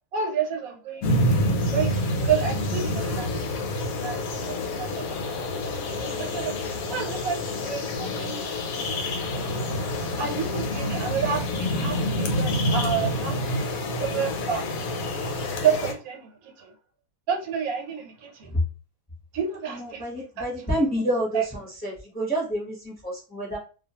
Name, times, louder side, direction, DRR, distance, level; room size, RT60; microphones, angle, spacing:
voice 1, 0.1-3.3 3.7-6.5 6.9-8.9 9.2-9.3 10.2-14.7 15.6-16.7 17.3-18.6 19.3-20.8 21.3-21.4, right 7 dB, 90° right, 1.1 m, -30 dB
sound 1, 1.0-15.9, left 1 dB, 85° left, 1.1 m, -27 dB
voice 2, 19.7-21.4 21.8-23.6, right 1 dB, 10° left, 0.8 m, -28 dB
2.3 x 2.3 x 2.8 m
omnidirectional pair, 1.5 m